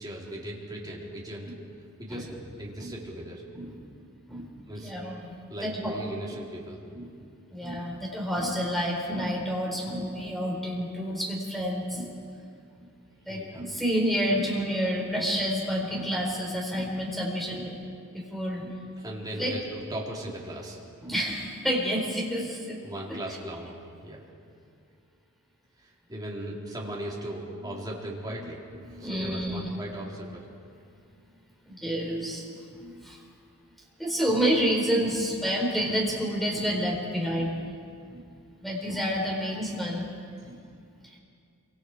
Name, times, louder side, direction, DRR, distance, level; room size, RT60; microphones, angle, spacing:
voice 1, 0.0-1.5 2.0-3.4 4.7-4.9 5.5-6.8 13.3-13.6 19.0-19.6 19.9-20.8 22.8-23.7 24.0-24.2 25.8-30.5 40.4-40.5, right 1 dB, 20° right, -4 dB, 3.8 m, -38 dB
voice 2, 4.8-6.0 6.9-7.1 7.5-12.1 12.8-12.9 13.2-17.7 18.1-18.8 19.4-19.6 21.0-22.8 23.1-23.2 28.8-29.6 31.7-33.2 34.0-37.7 38.1-38.2 38.6-40.1 40.4-40.6 41.0-41.2, equal, ahead, -2 dB, 4.4 m, -29 dB
27.0 x 25.0 x 4.8 m, 2.3 s
head